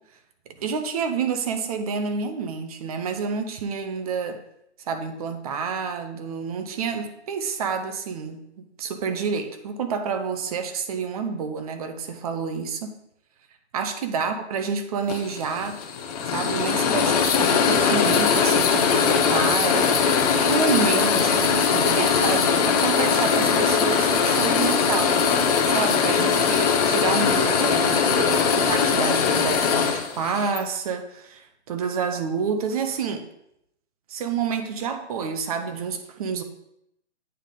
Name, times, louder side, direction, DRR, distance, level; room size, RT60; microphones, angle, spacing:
voice 1, 0.5-4.4 4.9-12.9 13.7-15.8 16.3-25.2 25.7-33.3 34.1-36.4, right 5 dB, 30° right, 8 dB, 0.6 m, -29 dB
sound 1, 15.1-30.6, left 6 dB, 35° left, 0.7 m, -21 dB
8.7 x 3.6 x 3.7 m, 0.79 s
hypercardioid pair, 140°, 35 cm